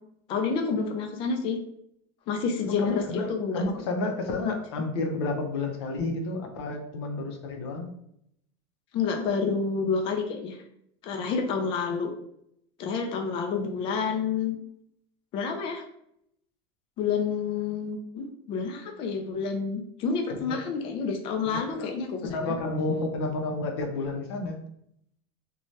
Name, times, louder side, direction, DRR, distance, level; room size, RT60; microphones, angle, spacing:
voice 1, 0.3-1.6 2.3-3.0 3.3-3.6 8.9-10.6 11.0-12.1 12.8-14.6 15.3-15.8 17.0-22.5, left 5 dB, 40° left, 4 dB, 0.4 m, -29 dB
voice 2, 2.6-7.9 20.3-20.6 21.4-21.9 22.2-24.6, left 3 dB, 85° left, 4 dB, 0.6 m, -31 dB
2.7 x 2.2 x 3.1 m, 0.75 s
supercardioid pair, 140°, 13 cm